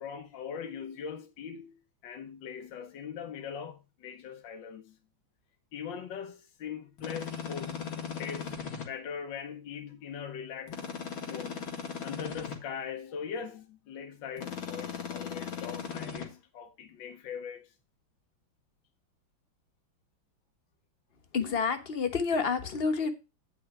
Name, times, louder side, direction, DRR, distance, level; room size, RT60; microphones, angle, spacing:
voice 1, 0.0-1.7 2.0-4.9 5.7-7.8 8.2-8.6 8.9-10.8 11.3-11.6 12.0-17.7, left 7 dB, 70° left, 1.6 m, -41 dB
sound 1, 7.0-8.9 10.7-12.6 14.4-16.3, left 6 dB, 85° left, 2.7 m, -38 dB
voice 2, 21.3-23.1, left 5 dB, 35° left, 1.2 m, -29 dB
9.2 x 5.7 x 4.7 m
omnidirectional pair, 2.2 m